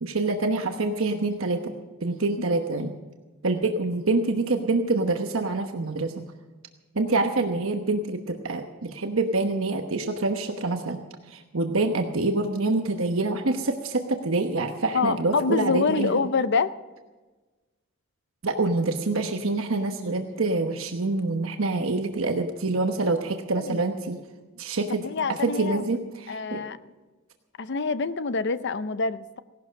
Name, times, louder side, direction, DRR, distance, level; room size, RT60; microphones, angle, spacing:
voice 1, 0.0-2.9 3.4-6.2 6.9-11.0 11.3-16.3 18.4-24.2 24.6-26.6, right 3 dB, 75° right, 5 dB, 1.1 m, -26 dB
voice 2, 14.9-16.7 23.6-23.8 25.0-25.9 26.3-26.8 27.6-29.4, left 4 dB, 60° left, 14 dB, 0.6 m, -26 dB
17.5 x 12.0 x 6.4 m, 1.2 s
head